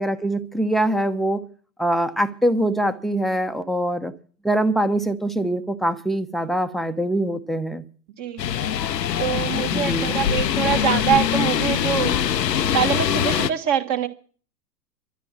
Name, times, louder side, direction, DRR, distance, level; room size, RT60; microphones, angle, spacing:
voice 1, 0.0-1.4 1.8-4.1 4.4-7.8 9.7-10.1, right 1 dB, ahead, 0.8 m, -23 dB
sound 1, 8.4-13.5, left 9 dB, 80° left, 0.8 m, -23 dB
voice 2, 9.2-12.3 12.5-14.1, right 9 dB, 35° right, 1.6 m, -24 dB
13.0 x 9.8 x 7.4 m
figure-of-eight pair, 100°, 49 cm